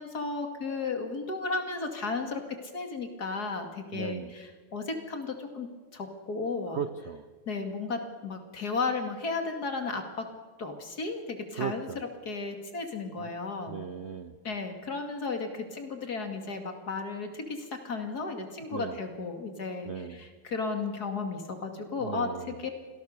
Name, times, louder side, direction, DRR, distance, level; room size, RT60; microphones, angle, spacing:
voice 1, 0.0-6.8 7.5-10.3 10.6-11.9 12.2-13.8 14.4-22.7, left 4 dB, 45° left, 5 dB, 2.8 m, -34 dB
voice 2, 3.9-4.3 6.7-7.2 11.6-12.0 13.2-13.3 13.7-14.3 18.7-19.0 19.8-20.2 22.0-22.6, right 7 dB, 80° right, 10 dB, 0.6 m, -36 dB
26.5 x 18.0 x 6.7 m, 1.4 s
omnidirectional pair, 2.4 m